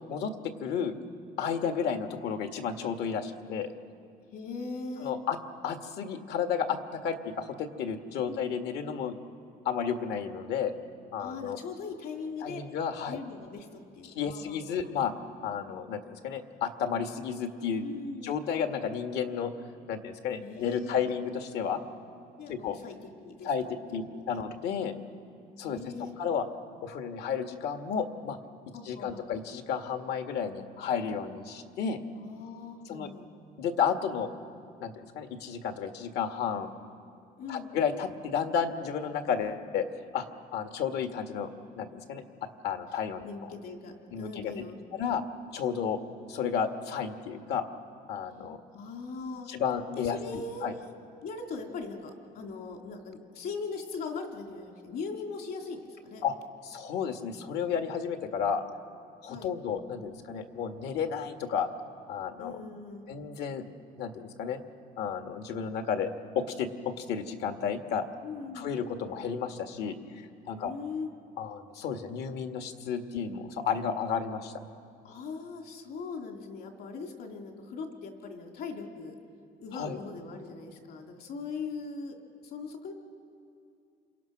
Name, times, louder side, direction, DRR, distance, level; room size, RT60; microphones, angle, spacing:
voice 1, 0.6-1.0 1.4-3.7 5.0-5.4 5.6-9.2 9.7-10.7 11.1-11.6 12.4-13.2 14.1-15.1 15.4-17.9 18.2-19.5 19.9-21.8 22.5-22.8 23.4-24.9 25.6-25.9 26.2-26.5 26.8-28.4 28.9-32.0 32.9-33.1 33.6-34.3 34.8-36.7 37.5-39.9 40.1-40.2 40.5-41.5 41.8-42.2 42.6-43.3 44.1-44.5 44.9-45.2 45.5-46.0 46.3-47.7 48.1-48.6 49.5-50.2 50.6-50.7 56.2-56.3 56.6-58.6 59.2-61.7 62.1-62.6 63.1-63.6 64.0-64.6 65.0-66.1 66.4-68.1 68.6-70.7 71.4-74.6 79.8-80.0, left 7 dB, 80° left, 6 dB, 2.0 m, -32 dB
voice 2, 4.3-5.1 8.2-8.4 11.2-12.6 13.1-14.6 14.8-14.9 17.8-18.4 20.4-21.1 22.4-23.5 24.0-24.4 25.7-26.1 28.7-29.3 32.1-33.3 37.4-37.7 43.2-44.8 48.7-49.5 50.0-50.7 51.2-56.2 59.3-59.5 62.4-63.2 68.2-68.7 70.5-71.1 75.0-79.2 79.6-82.1 82.4-82.9, left 4 dB, 65° left, 3 dB, 3.3 m, -40 dB
28.0 x 27.0 x 6.1 m, 2.5 s
cardioid pair, 110°, 17 cm